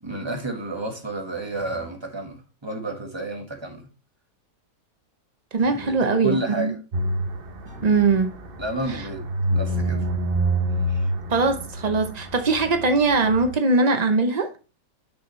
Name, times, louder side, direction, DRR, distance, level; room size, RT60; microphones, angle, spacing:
voice 1, 0.0-3.9 5.7-6.8 8.6-10.1 10.9-11.1, right 1 dB, 15° right, 1.5 m, -31 dB
sound 1, 1.5-2.1 5.6-6.1 7.6-8.3 8.8-9.3, equal, 65° left, 5.3 m, -44 dB
voice 2, 5.5-6.7 7.8-8.3 11.3-14.5, right 3 dB, 85° right, 0.3 m, -21 dB
sound 2, 6.9-13.5, right 1 dB, 45° right, 0.8 m, -27 dB
8.4 x 6.0 x 3.1 m
omnidirectional pair, 1.9 m